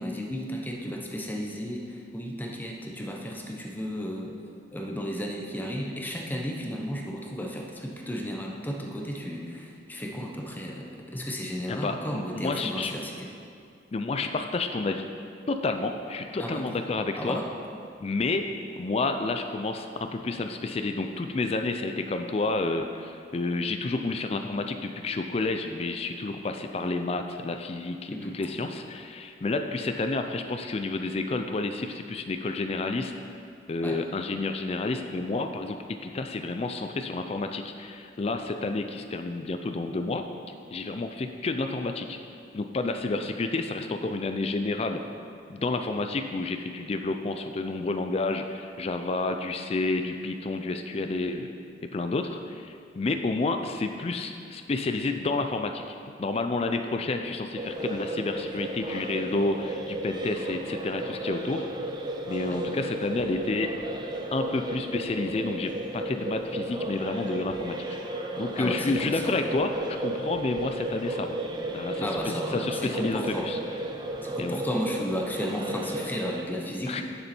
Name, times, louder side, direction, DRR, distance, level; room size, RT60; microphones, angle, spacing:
voice 1, 0.0-4.4 4.7-13.3 16.4-16.8 17.2-17.5 28.1-28.4 33.8-34.0 68.6-69.3 72.0-73.5 74.2-77.0, equal, 10° left, 0 dB, 0.9 m, -33 dB
voice 2, 11.7-12.9 13.9-15.1 15.5-17.4 18.0-18.5 18.8-33.1 33.7-35.8 36.0-40.2 40.7-42.2 42.5-45.0 45.5-51.5 51.9-61.7 62.2-63.7 64.3-67.9 68.4-71.4 71.7-73.6 74.4-74.6 76.9-77.0, left 3 dB, 35° left, 6 dB, 0.4 m, -30 dB
sound 1, 57.6-76.4, right 1 dB, 25° right, 0.7 m, -34 dB
10.0 x 6.9 x 4.4 m, 2.4 s
head